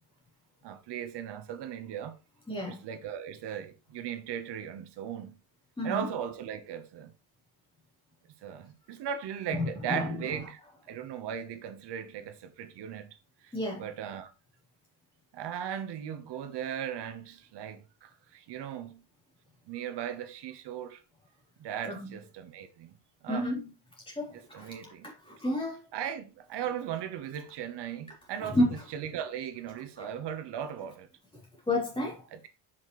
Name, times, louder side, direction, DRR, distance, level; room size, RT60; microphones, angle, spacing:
voice 1, 0.6-2.2 2.7-5.3 5.8-7.1 8.4-10.6 10.9-13.5 13.8-14.3 15.3-19.0 19.7-21.0 21.6-23.0 23.2-23.5 24.3-25.1 25.9-31.1 32.3-32.5, right 9 dB, 55° right, 1.1 m, -38 dB
voice 2, 2.5-2.8 5.8-6.1 9.5-10.3 13.5-13.8 21.8-22.1 23.3-23.7 24.1-25.8 28.4-28.8 30.0-30.1 31.7-32.2, left 1 dB, 10° left, 3.4 m, -31 dB
6.3 x 5.8 x 3.1 m
cardioid pair, 140°, 48 cm